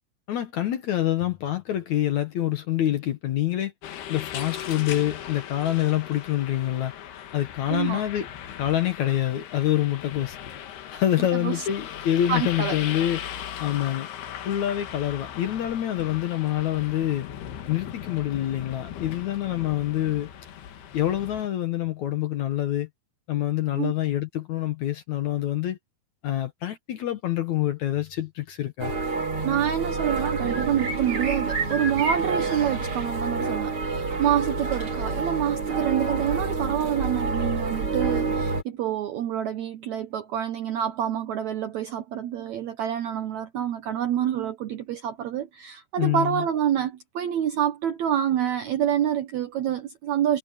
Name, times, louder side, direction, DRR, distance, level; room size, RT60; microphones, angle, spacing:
voice 1, 0.3-3.7 4.1-6.9 7.3-8.3 8.6-10.4 10.9-13.2 13.6-14.1 14.5-17.3 17.7-20.3 20.9-22.9 23.3-25.8 26.2-28.9 46.0-46.5, left 12 dB, 65° left, 2.1 m, -26 dB
sound 1, 3.8-21.5, left 10 dB, 85° left, 3.8 m, -38 dB
voice 2, 7.7-8.0 11.4-11.7 12.3-12.8 23.7-23.9 29.4-50.4, right 10 dB, 75° right, 1.7 m, -27 dB
sound 2, 28.8-38.6, right 4 dB, 40° right, 2.9 m, -28 dB
omnidirectional pair, 4.4 m